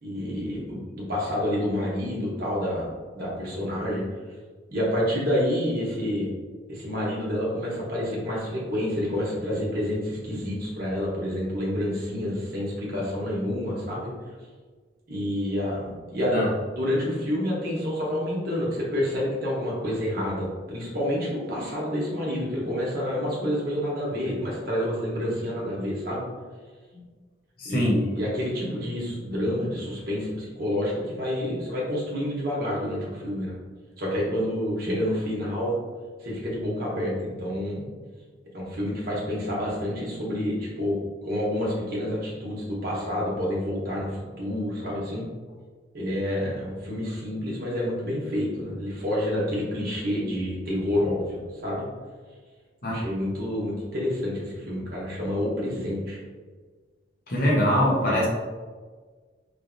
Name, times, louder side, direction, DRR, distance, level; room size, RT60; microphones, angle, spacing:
voice 1, 0.0-2.9 3.1-4.0 4.7-6.3 6.7-14.1 15.1-16.5 16.8-26.2 27.7-33.5 34.0-35.8 36.2-37.9 38.5-45.3 45.9-51.8 52.9-56.2 58.0-58.3, left 1 dB, 50° right, -5 dB, 1.0 m, -28 dB
voice 2, 27.6-28.0 52.8-53.0 57.3-58.3, equal, 50° left, -4 dB, 0.8 m, -23 dB
3.3 x 2.6 x 2.6 m, 1.5 s
head